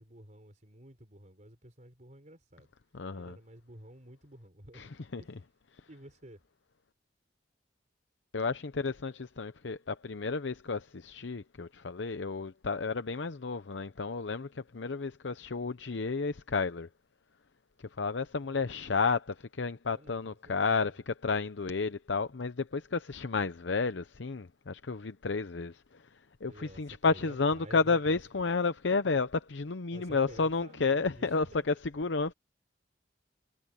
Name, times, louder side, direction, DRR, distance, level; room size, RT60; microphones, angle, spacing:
voice 1, 0.0-2.7 3.1-4.9 5.2-5.3 5.9-6.4 18.4-18.8 19.9-21.0 26.5-28.2 29.9-31.8, right 1 dB, 45° right, 4.5 m, -52 dB
voice 2, 2.9-3.4 4.7-5.2 8.3-16.9 18.0-32.3, left 4 dB, 90° left, 0.8 m, -32 dB
head